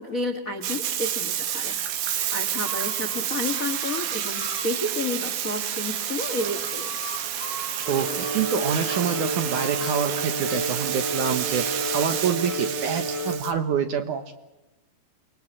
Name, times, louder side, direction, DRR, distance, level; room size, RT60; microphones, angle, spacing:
voice 1, 0.0-7.0, left 2 dB, 45° left, 9 dB, 1.1 m, -31 dB
Bathtub (filling or washing), 0.6-13.5, right 10 dB, 80° right, 3.7 m, -30 dB
sound 1, 1.4-2.0 2.5-11.1, left 2 dB, 65° left, 5.3 m, -42 dB
sound 2, 7.8-13.4, right 1 dB, 25° right, 7.2 m, -31 dB
voice 2, 7.9-14.3, right 7 dB, 65° right, 9 dB, 2.2 m, -27 dB
28.5 x 21.5 x 7.3 m, 1.0 s
omnidirectional pair, 4.5 m